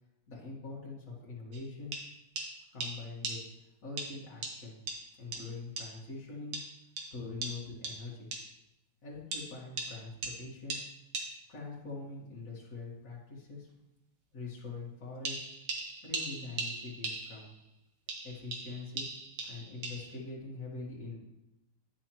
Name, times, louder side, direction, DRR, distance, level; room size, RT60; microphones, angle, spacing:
voice 1, 0.3-2.0 2.7-4.8 5.2-6.6 7.1-8.3 9.0-10.8 11.5-13.7 14.3-15.4 16.0-17.5 18.2-19.1 19.4-21.2, left 3 dB, 50° left, -6 dB, 2.1 m, -43 dB
sound 1, 1.5-1.6 1.9-2.0 2.4-2.5 2.8-2.9 3.2-3.4 4.0-4.1 4.4-4.5 4.9-5.0 5.3-5.4 5.8-5.9 6.5-6.6 7.0-7.1 7.4-7.5 7.8-8.0 8.3-8.4 9.3-9.4 9.8-9.9 10.2-10.3 10.7-10.8 11.1-11.3 15.3-17.6 18.1-20.2, right 3 dB, 90° right, 2.0 m, -38 dB
10.5 x 6.2 x 3.0 m, 0.90 s
omnidirectional pair, 1.8 m